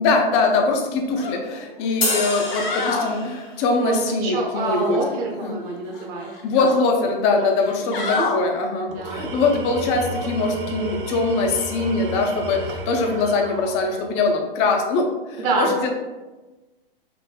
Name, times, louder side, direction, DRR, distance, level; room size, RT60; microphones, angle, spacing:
voice 1, 0.0-5.0 5.4-5.6 6.4-15.9, left 3 dB, 30° left, 3 dB, 0.4 m, -22 dB
sound 1, 1.2-1.4 1.8-1.9 2.3-3.1 4.6-5.5 5.9-6.8 7.5-8.4 10.1-10.3, left 4 dB, 60° left, 0.7 m, -29 dB
sound 2, 2.0-3.6, left 3 dB, 90° left, 1.0 m, -27 dB
voice 2, 3.8-6.3 7.0-7.5 7.8-8.2 8.9-9.3 15.4-15.9, right 3 dB, 35° right, 0 dB, 0.7 m, -27 dB
Tools, 8.9-14.3, right 2 dB, 65° right, 0.6 m, -33 dB
3.7 x 2.6 x 2.2 m, 1.2 s
hypercardioid pair, 120°, 29 cm